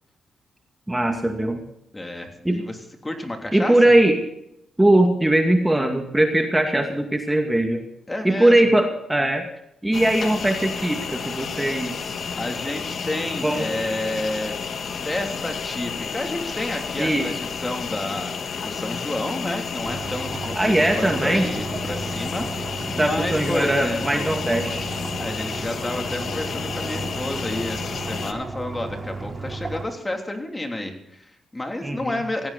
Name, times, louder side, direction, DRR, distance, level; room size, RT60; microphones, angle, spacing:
voice 1, 0.9-1.6 2.4-2.6 3.5-4.2 4.8-7.8 8.2-9.5 9.8-12.3 13.4-13.7 17.0-17.3 20.6-21.5 23.0-24.8 31.8-32.2, right 1 dB, 10° right, 3 dB, 2.3 m, -20 dB
voice 2, 1.9-2.8 3.0-3.9 8.1-8.6 12.4-14.6 14.9-18.4 18.6-24.3 25.2-32.5, left 1 dB, 20° left, 3 dB, 3.2 m, -30 dB
sound 1, 9.9-28.3, left 6 dB, 65° left, 1.7 m, -31 dB
sound 2, 19.8-29.8, right 3 dB, 30° right, 3.6 m, -34 dB
18.0 x 15.5 x 4.2 m, 0.78 s
cardioid pair, 70°, 0 cm